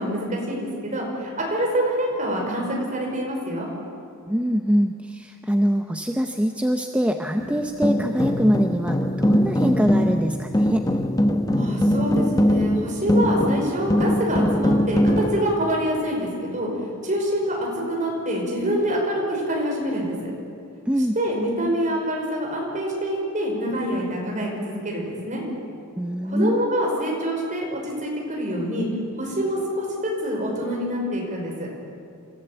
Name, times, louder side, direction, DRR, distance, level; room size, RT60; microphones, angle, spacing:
voice 1, 0.0-3.7 11.6-16.7 17.0-20.3 21.2-25.4 26.2-28.9 29.2-31.7, equal, 35° right, -1 dB, 5.4 m, -26 dB
voice 2, 4.3-10.9 20.9-21.2 26.0-26.6, equal, 5° right, 5 dB, 0.7 m, -23 dB
sound 1, 7.4-15.6, equal, 15° left, 1.1 m, -21 dB
27.0 x 15.0 x 8.1 m, 2.4 s
head